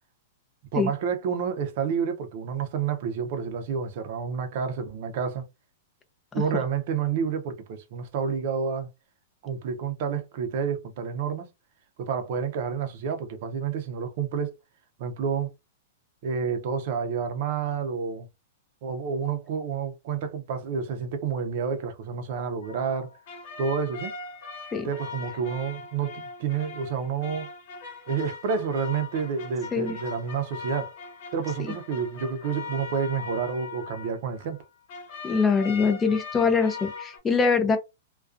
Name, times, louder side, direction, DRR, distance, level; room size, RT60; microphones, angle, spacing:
voice 1, 0.7-5.4 6.3-8.9 9.4-11.5 12.0-14.6 15.0-15.5 16.2-18.3 18.8-23.2 23.6-24.1 24.8-27.5 28.1-30.9 31.3-34.6, right 6 dB, 50° right, 0.6 m, -29 dB
sound 1, 22.6-34.6 34.9-37.2, left 5 dB, 50° left, 1.1 m, -40 dB
voice 2, 35.2-37.8, left 5 dB, 15° left, 0.5 m, -23 dB
2.3 x 2.3 x 2.5 m
hypercardioid pair, 155°, 0 cm